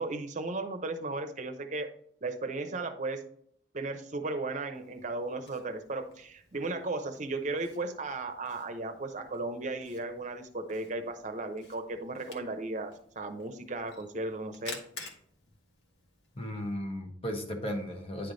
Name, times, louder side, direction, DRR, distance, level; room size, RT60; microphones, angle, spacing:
voice 1, 0.0-1.9 2.2-3.2 3.7-14.8, right 2 dB, 40° right, 6 dB, 0.8 m, -35 dB
Camera, 4.7-16.7, left 3 dB, 85° left, 1.3 m, -52 dB
voice 2, 16.3-18.3, equal, 35° left, 4 dB, 1.1 m, -35 dB
9.9 x 3.3 x 3.9 m, 0.63 s
head